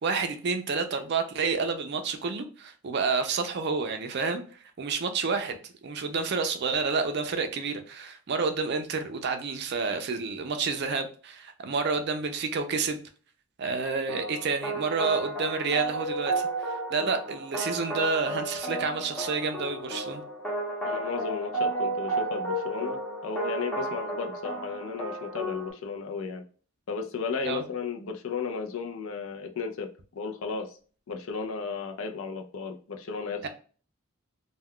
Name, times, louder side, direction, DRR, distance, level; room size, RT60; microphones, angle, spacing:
voice 1, 0.0-4.4 4.8-5.6 5.8-13.0 13.6-16.4 16.9-20.2 27.4-27.6 33.4-33.5, right 4 dB, 50° right, 7 dB, 0.4 m, -29 dB
sound 1, 14.1-25.7, right 2 dB, 5° left, 0.7 m, -32 dB
voice 2, 20.8-26.4 26.9-30.8 31.1-33.5, left 5 dB, 65° left, 3 dB, 0.5 m, -34 dB
2.2 x 2.2 x 3.5 m, 0.40 s
head